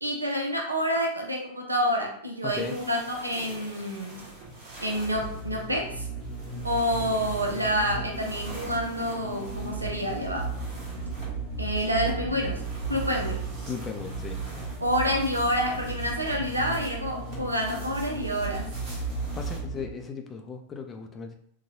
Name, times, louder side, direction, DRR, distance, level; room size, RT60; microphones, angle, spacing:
voice 1, 0.0-4.3 4.8-6.1 6.6-10.5 11.6-12.6 12.9-13.4 14.8-18.7, equal, 85° right, 1 dB, 0.6 m, -28 dB
voice 2, 2.4-2.8 13.7-14.4 19.3-21.4, left 5 dB, 20° left, 4 dB, 0.4 m, -36 dB
sound 1, 2.5-19.6, right 2 dB, 45° right, 1.2 m, -46 dB
sound 2, 4.9-19.9, right 3 dB, 25° right, 1.3 m, -35 dB
3.9 x 2.3 x 2.8 m, 0.65 s
figure-of-eight pair, 90°, 0 cm